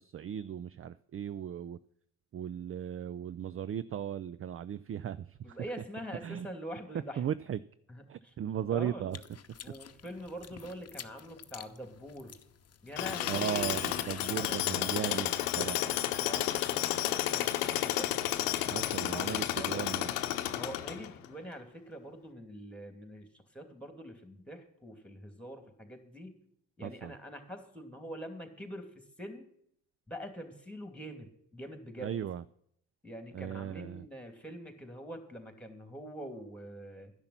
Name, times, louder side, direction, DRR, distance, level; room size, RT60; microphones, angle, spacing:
voice 1, 0.0-1.8 2.3-5.6 6.2-6.5 7.2-7.6 8.1-9.2 13.3-15.9 18.7-20.1 26.8-27.1 32.0-32.4 33.3-34.1, right 9 dB, 30° right, 17 dB, 0.5 m, -37 dB
voice 2, 5.4-7.2 7.9-8.3 8.7-9.2 9.6-12.3 12.8-13.9 14.4-15.3 16.2-18.1 18.6-20.0 20.5-26.4 26.8-29.5 30.1-32.2 33.0-37.1, equal, 5° left, 6 dB, 2.8 m, -45 dB
sound 1, 9.1-14.9, left 8 dB, 35° left, 1.0 m, -47 dB
Tools, 13.0-21.3, left 14 dB, 80° left, 0.9 m, -32 dB
12.5 x 10.5 x 5.9 m, 0.71 s
hypercardioid pair, 45°, 44 cm